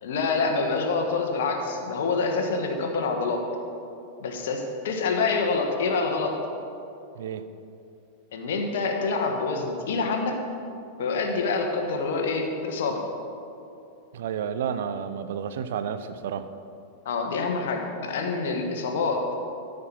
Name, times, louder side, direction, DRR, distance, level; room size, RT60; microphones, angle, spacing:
voice 1, 0.0-3.4 4.2-6.4 8.3-10.4 11.0-13.0 17.0-19.2, left 4 dB, 60° left, 3 dB, 1.3 m, -26 dB
voice 2, 7.2-7.5 14.1-16.5, right 8 dB, 60° right, 11 dB, 0.5 m, -31 dB
13.5 x 5.2 x 6.0 m, 2.6 s
figure-of-eight pair, 90°, 0 cm